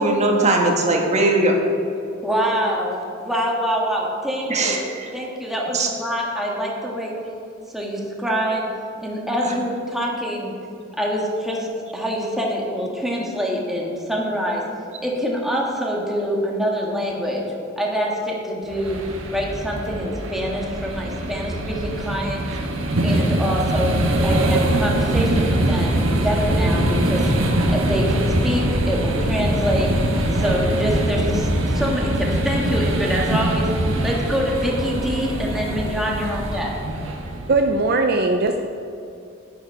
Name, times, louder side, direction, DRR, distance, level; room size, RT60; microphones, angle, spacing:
voice 1, 0.0-1.6 4.5-5.1 5.7-5.9 9.4-9.5, right 2 dB, 35° right, 1 dB, 1.5 m, -19 dB
voice 2, 2.2-4.8 5.1-7.2 7.7-8.7 9.0-10.5 11.0-11.7 11.9-14.6 15.0-19.0 19.3-22.4 23.0-27.3 27.7-29.9 30.3-33.7 34.0-36.8, equal, ahead, -3 dB, 1.6 m, -25 dB
sound 1, 18.7-37.8, right 1 dB, 75° right, 1.3 m, -23 dB
voice 3, 37.5-38.6, right 3 dB, 50° right, 4 dB, 0.6 m, -19 dB
11.0 x 9.6 x 4.8 m, 2.6 s
head